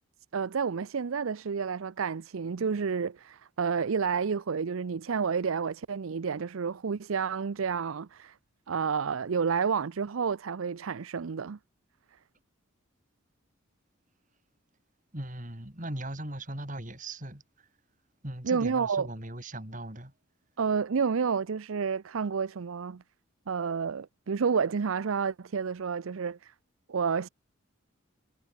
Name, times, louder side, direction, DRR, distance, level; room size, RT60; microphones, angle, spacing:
voice 1, 0.3-8.3 8.7-11.6 18.4-19.1 20.6-23.0 23.5-26.5 26.9-27.3, right 6 dB, 80° right, 0.5 m, -30 dB
voice 2, 15.1-17.4 18.2-20.1, right 1 dB, 40° right, 4.5 m, -38 dB
head